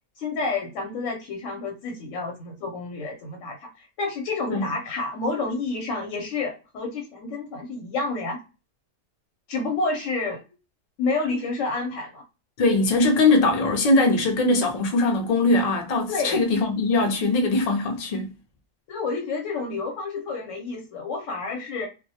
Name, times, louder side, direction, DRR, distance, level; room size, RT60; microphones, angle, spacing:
voice 1, 0.2-8.4 9.5-10.4 11.0-12.2 16.1-16.4 18.9-21.9, left 3 dB, 85° left, 1.0 m, -29 dB
voice 2, 12.6-18.3, left 2 dB, 55° left, 0.4 m, -21 dB
2.2 x 2.1 x 2.6 m
omnidirectional pair, 1.3 m